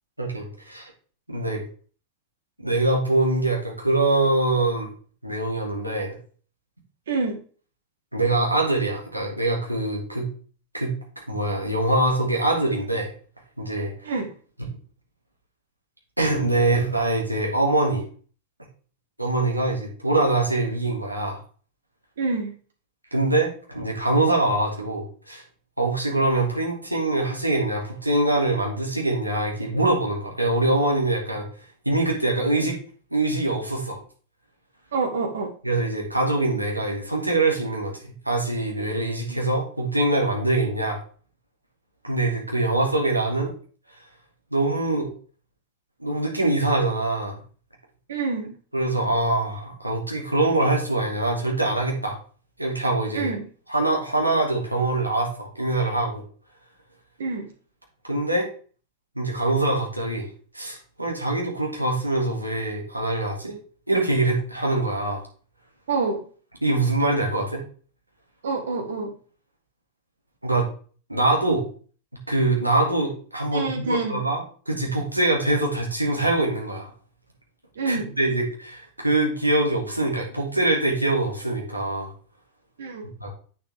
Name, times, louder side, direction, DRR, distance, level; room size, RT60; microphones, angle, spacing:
voice 1, 0.2-0.9 1.3-1.6 2.6-4.9 5.2-6.2 8.1-10.3 10.7-13.1 13.6-14.1 16.2-18.0 19.2-21.4 23.1-25.4 25.8-31.4 31.9-32.8 33.1-34.0 35.6-41.0 42.0-43.5 44.5-45.1 46.0-47.4 48.7-52.2 52.6-53.3 53.7-56.2 58.0-58.5 59.2-60.3 60.5-63.6 63.9-65.2 66.6-67.6 70.4-70.7 71.1-71.6 72.3-76.9 77.8-82.1 83.2-83.3, right 2 dB, 85° right, -1 dB, 2.5 m, -24 dB
voice 2, 7.1-7.4 14.0-14.3 22.2-22.5 34.9-35.5 39.3-39.4 48.1-48.5 53.1-53.4 57.2-57.5 65.9-66.2 68.4-69.1 73.5-74.2 77.7-78.1 82.8-83.1, right 4 dB, 65° right, 3 dB, 1.4 m, -27 dB
8.6 x 6.8 x 3.5 m, 0.41 s
figure-of-eight pair, 90°, 0 cm